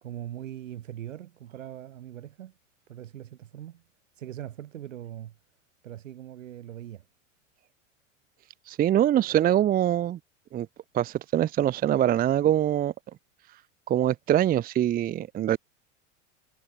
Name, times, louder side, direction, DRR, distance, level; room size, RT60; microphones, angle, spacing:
voice 1, 0.0-2.5 2.9-3.8 4.1-5.3 5.8-7.0, right 11 dB, 85° right, 2.6 m, -41 dB
voice 2, 8.7-10.2 10.5-10.7 10.9-12.9 13.9-15.6, right 11 dB, 25° right, 0.6 m, -23 dB
hypercardioid pair, 100°, 37 cm